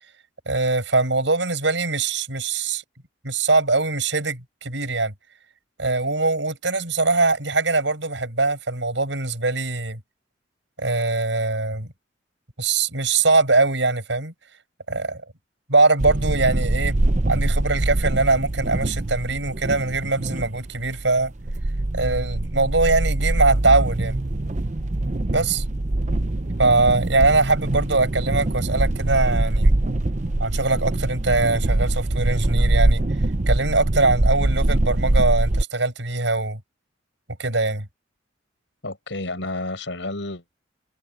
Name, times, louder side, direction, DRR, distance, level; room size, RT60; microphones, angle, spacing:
voice 1, 0.5-2.8 3.2-5.1 5.8-10.0 10.8-11.9 12.6-14.3 14.9-15.2 15.7-17.0 17.3-21.3 21.9-24.2 25.3-25.6 26.6-29.7 30.4-33.0 33.5-36.6 37.4-37.9, right 3 dB, 75° right, 7.9 m, -22 dB
sound 1, 16.0-35.6, right 1 dB, 40° right, 0.8 m, -23 dB
voice 2, 38.8-40.6, left 2 dB, 75° left, 6.3 m, -31 dB
head